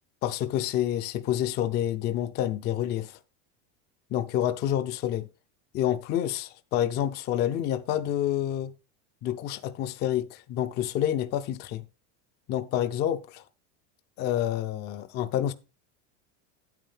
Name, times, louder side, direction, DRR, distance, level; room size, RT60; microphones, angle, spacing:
voice 1, 0.2-3.2 4.1-5.3 5.7-8.7 9.2-11.8 12.5-13.4 14.2-15.5, left 11 dB, 30° left, 0.5 m, -28 dB
9.1 x 8.9 x 3.4 m
supercardioid pair, 165°, 37 cm